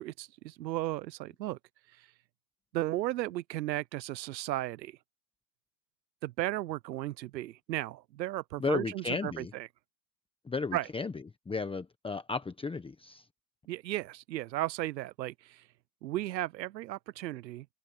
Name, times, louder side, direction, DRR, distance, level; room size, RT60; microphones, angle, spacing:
voice 1, 0.0-1.6 2.7-5.0 6.2-9.7 10.7-10.9 13.7-15.6 16.0-17.7, right 15 dB, 85° right, 0.9 m, -35 dB
voice 2, 8.6-9.5 10.4-11.1 11.5-13.2, left 4 dB, 10° left, 1.3 m, -34 dB
hypercardioid pair, 110°, 50 cm